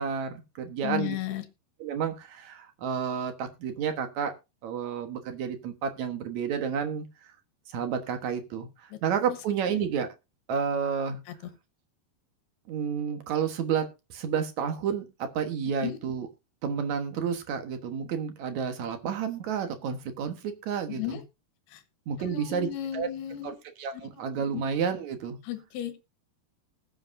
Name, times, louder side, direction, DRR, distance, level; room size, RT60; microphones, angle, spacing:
voice 1, 0.0-1.2 1.8-4.3 4.6-7.1 7.7-10.1 10.5-11.2 12.7-16.3 16.6-21.2 22.1-22.7 22.9-23.1 23.4-23.5 23.8-25.4, right 7 dB, 60° right, 7 dB, 2.0 m, -30 dB
voice 2, 0.8-1.4 8.9-9.0 11.3-11.4 15.8-16.0 20.9-21.2 21.7-21.8 22.2-23.5 24.5-24.6 25.4-26.0, left 13 dB, 75° left, 10 dB, 3.3 m, -34 dB
20.0 x 7.8 x 2.6 m, 0.26 s
omnidirectional pair, 4.8 m